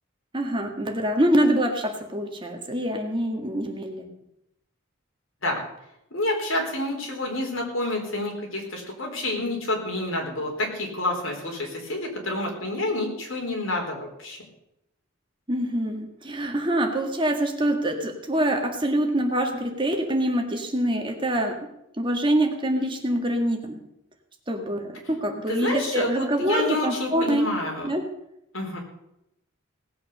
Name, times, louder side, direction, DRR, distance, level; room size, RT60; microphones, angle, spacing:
voice 1, 0.3-4.1 15.5-21.7 22.0-23.8 24.5-27.5 27.8-28.0, right 1 dB, 25° right, 3 dB, 1.8 m, -25 dB
voice 2, 6.1-14.4 25.5-27.9 28.5-28.8, left 2 dB, 70° left, 1 dB, 4.3 m, -29 dB
18.0 x 8.2 x 6.8 m, 0.82 s
head